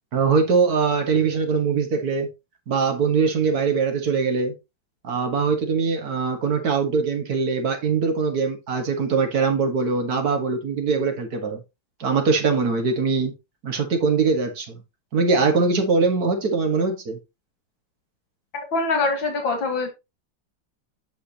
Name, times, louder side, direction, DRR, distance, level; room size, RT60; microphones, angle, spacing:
voice 1, 0.1-2.3 2.7-4.5 5.0-11.6 12.0-13.3 13.6-14.8 15.1-17.2, right 5 dB, 55° right, 2.0 m, -22 dB
voice 2, 18.5-19.9, left 3 dB, 90° left, 2.5 m, -24 dB
8.0 x 6.2 x 2.9 m
omnidirectional pair, 2.0 m